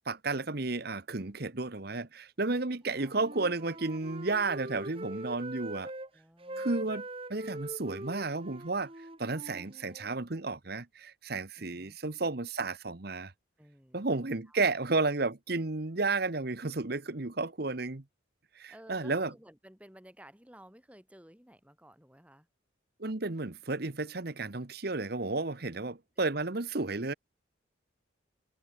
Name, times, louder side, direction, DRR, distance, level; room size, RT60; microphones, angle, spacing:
voice 1, 0.1-5.9 6.6-7.0 7.3-8.9 9.2-13.3 13.9-18.0 18.6-19.3 23.0-27.1, right 3 dB, 50° right, 1.1 m, -32 dB
Wind instrument woodwind instrument, 2.8-6.1 6.4-10.2, right 1 dB, 30° right, 1.9 m, -43 dB
voice 2, 5.6-7.0 7.4-8.0 11.6-12.0 13.6-14.6 17.4-17.6 18.7-22.5 25.5-25.7, equal, 5° right, 6.0 m, -57 dB
head